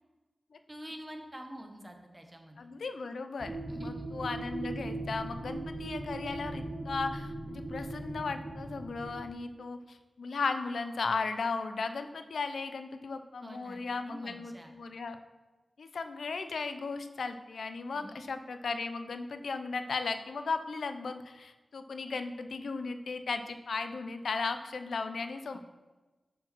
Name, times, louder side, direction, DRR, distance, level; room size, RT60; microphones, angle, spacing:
voice 1, 0.7-2.6 3.7-4.1 13.4-14.7 17.9-18.2 25.5-25.6, equal, 15° right, 4 dB, 1.3 m, -46 dB
voice 2, 2.6-15.2 15.8-25.6, left 4 dB, 90° left, 9 dB, 0.5 m, -36 dB
sound 1, 3.4-9.3, right 2 dB, 45° right, 0.9 m, -39 dB
7.3 x 5.1 x 6.0 m, 1.2 s
cardioid pair, 55°, 0 cm